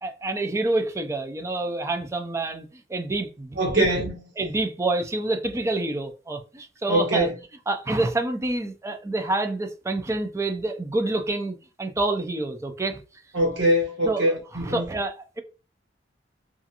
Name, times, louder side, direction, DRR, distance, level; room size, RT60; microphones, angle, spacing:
voice 1, 0.0-3.9 4.4-7.3 7.7-13.0 14.0-15.4, right 2 dB, 15° right, 0.4 m, -28 dB
voice 2, 3.6-4.2 6.9-7.3 13.3-14.8, right 1 dB, 85° right, 1.1 m, -23 dB
2.4 x 2.4 x 2.7 m
head